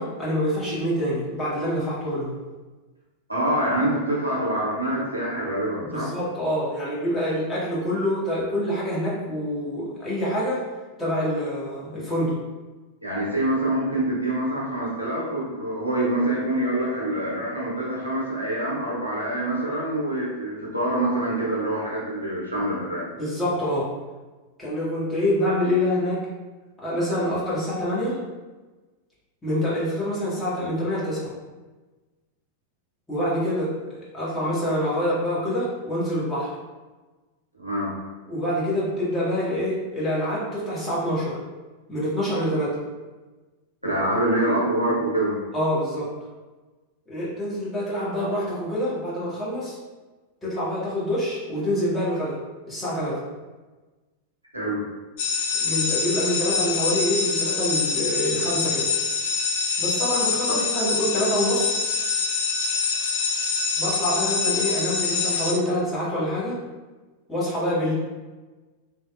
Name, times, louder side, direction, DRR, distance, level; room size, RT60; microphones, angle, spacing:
voice 1, 0.0-2.4 5.9-10.6 11.0-12.4 23.2-23.9 24.6-26.3 26.8-28.2 29.4-31.3 33.1-36.5 38.3-41.4 41.9-42.8 45.5-46.1 47.1-49.8 50.4-52.4 52.7-53.2 55.6-58.9 59.8-61.7 63.8-66.6 67.3-67.9, equal, 15° left, -9 dB, 1.0 m, -26 dB
voice 2, 3.3-6.1 13.0-23.2 37.6-37.9 43.8-45.4 54.5-54.8 60.5-60.6, right 1 dB, 85° right, -6 dB, 0.6 m, -25 dB
sound 1, 55.2-65.5, left 5 dB, 50° left, 0.3 m, -25 dB
2.8 x 2.0 x 2.3 m, 1.2 s
figure-of-eight pair, 90°, 0 cm